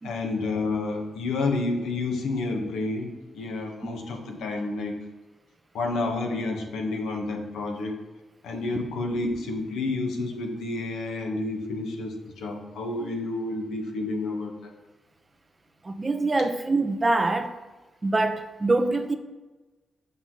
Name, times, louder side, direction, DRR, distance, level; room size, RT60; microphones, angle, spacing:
voice 1, 0.0-5.0 5.7-8.0 8.4-14.7, left 3 dB, 80° left, 2 dB, 1.3 m, -30 dB
voice 2, 15.8-17.5 18.0-19.2, right 2 dB, 35° right, 8 dB, 0.9 m, -24 dB
6.9 x 6.1 x 3.9 m, 1.2 s
supercardioid pair, 50°, 0 cm